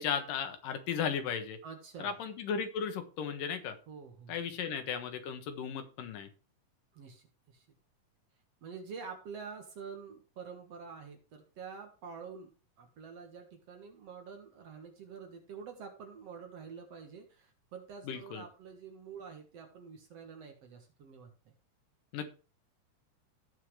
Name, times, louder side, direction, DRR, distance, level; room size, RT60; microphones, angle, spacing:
voice 1, 0.0-1.6 2.0-3.8 4.3-6.3 18.1-18.4 22.1-22.3, left 7 dB, 75° left, 7 dB, 3.0 m, -35 dB
voice 2, 1.6-2.2 3.9-4.3 6.9-7.7 8.6-12.5 12.8-21.3, right 6 dB, 55° right, 4 dB, 2.4 m, -47 dB
17.0 x 5.7 x 3.3 m, 0.35 s
omnidirectional pair, 3.9 m